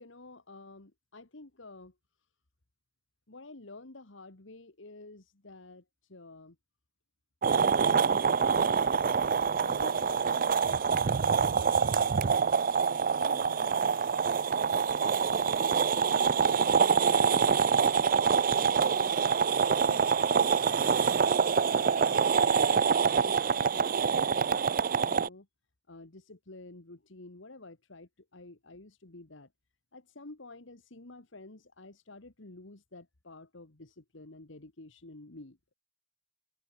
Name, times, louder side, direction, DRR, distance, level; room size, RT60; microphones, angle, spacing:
voice 1, 0.0-1.9 3.3-6.6 8.3-11.1 11.4-12.4 12.8-14.8 15.3-15.8 16.0-18.2 18.5-19.4 19.7-22.5 23.0-24.6 24.9-25.5 25.9-29.5 29.9-35.7, left 2 dB, 70° left, 1.7 m, -50 dB
sound 1, 7.4-25.3, right 6 dB, 45° right, 0.4 m, -26 dB
head